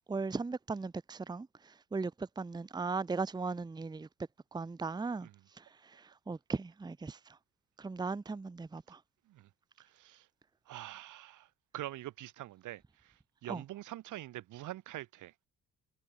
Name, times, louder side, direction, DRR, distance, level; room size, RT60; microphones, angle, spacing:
voice 1, 0.1-1.5 1.9-4.1 4.5-5.3 5.6-5.7 6.3-7.2 7.8-9.0 13.5-13.6, right 4 dB, 15° right, 0.7 m, -37 dB
voice 2, 9.8-10.3 10.7-11.5 11.7-15.3, right 15 dB, 80° right, 1.6 m, -45 dB
cardioid pair, 90°, 30 cm